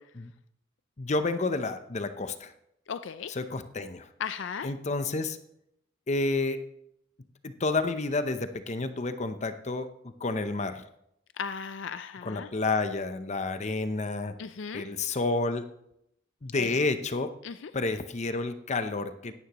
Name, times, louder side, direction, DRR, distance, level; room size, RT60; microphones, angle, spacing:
voice 1, 1.0-2.5 3.4-4.1 4.6-5.4 6.1-6.6 7.4-9.9 10.2-10.8 12.2-14.4 14.7-15.7 16.4-17.3 17.7-19.3, left 3 dB, 35° left, 10 dB, 0.7 m, -30 dB
voice 2, 2.9-3.3 4.2-4.7 11.4-12.5 14.4-14.9 16.6-16.8 17.4-17.7, left 6 dB, 70° left, 11 dB, 0.5 m, -36 dB
16.5 x 11.5 x 3.0 m, 0.76 s
head